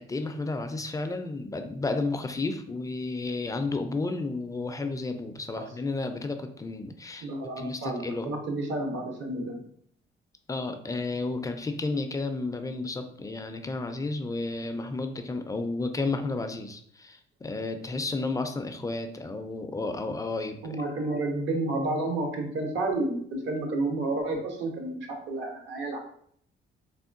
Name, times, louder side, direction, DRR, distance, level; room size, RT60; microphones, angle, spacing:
voice 1, 0.0-7.3 7.6-8.3 10.5-20.8, left 3 dB, 15° left, 7 dB, 0.3 m, -32 dB
voice 2, 7.2-9.6 20.6-26.0, right 2 dB, 70° right, 2 dB, 0.8 m, -30 dB
3.5 x 2.2 x 2.5 m, 0.65 s
cardioid pair, 90°, 20 cm